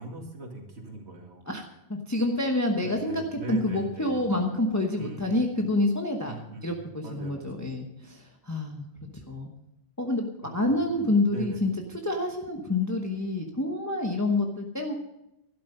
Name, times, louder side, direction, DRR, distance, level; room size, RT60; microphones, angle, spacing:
voice 1, 0.0-1.4 2.8-4.3 4.9-5.5 6.2-6.7 7.0-7.7 10.4-11.6, right 2 dB, 80° right, 1 dB, 2.6 m, -41 dB
voice 2, 1.5-3.2 3.5-6.3 6.6-9.5 10.0-10.3 10.5-11.7 12.0-14.9, left 2 dB, 15° left, 2 dB, 1.0 m, -28 dB
12.0 x 12.0 x 5.5 m, 0.88 s
omnidirectional pair, 1.1 m